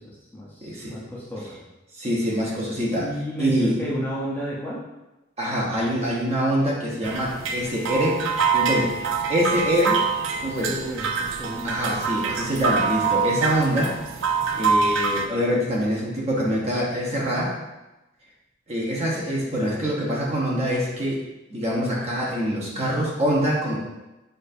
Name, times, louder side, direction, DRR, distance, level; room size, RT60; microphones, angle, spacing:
voice 1, 0.0-1.6 2.9-4.9 10.4-12.0, equal, 10° left, -7 dB, 0.6 m, -33 dB
voice 2, 0.6-1.0 2.0-3.1 3.4-3.7 5.4-8.2 8.5-8.9 9.3-10.0 10.4-10.7 11.6-13.9 14.5-17.6 18.7-21.2 21.5-23.8, equal, 30° right, -4 dB, 0.9 m, -24 dB
sound 1, 7.0-15.3, right 5 dB, 80° right, 0.4 m, -25 dB
6.3 x 2.6 x 2.6 m, 1.0 s
head